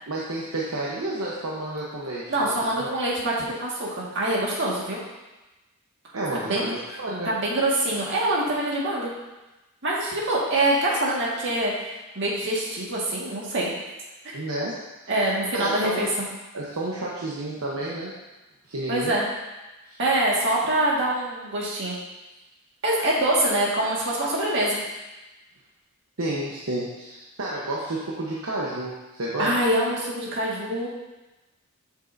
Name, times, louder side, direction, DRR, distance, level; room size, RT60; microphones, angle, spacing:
voice 1, 0.1-2.3 2.6-2.9 6.1-7.3 14.3-14.8 15.0-15.1 15.5-16.1 16.5-18.1 18.7-19.1 19.9-20.0 26.2-29.6, right 1 dB, 75° right, -5 dB, 1.0 m, -30 dB
voice 2, 2.3-5.0 6.4-6.7 7.3-9.1 9.8-11.9 12.2-13.7 14.2-14.4 15.1-16.3 18.9-19.3 20.0-22.0 22.8-24.8 29.4-30.9, right 1 dB, 55° right, -5 dB, 1.8 m, -24 dB
8.3 x 6.4 x 2.7 m, 1.1 s
head